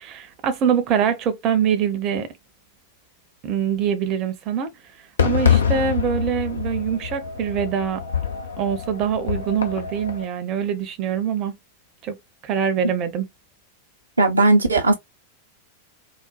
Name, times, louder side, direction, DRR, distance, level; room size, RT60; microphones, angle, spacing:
voice 1, 0.0-2.3 3.4-4.7 5.2-8.0 8.6-11.6 12.0-12.2 12.4-13.3, right 8 dB, 35° right, 0.7 m, -24 dB
Fireworks, 5.2-10.2, left 7 dB, 70° left, 0.6 m, -25 dB
voice 2, 14.2-14.9, right 2 dB, 80° right, 0.6 m, -16 dB
4.0 x 2.1 x 2.3 m
figure-of-eight pair, 90°, 0 cm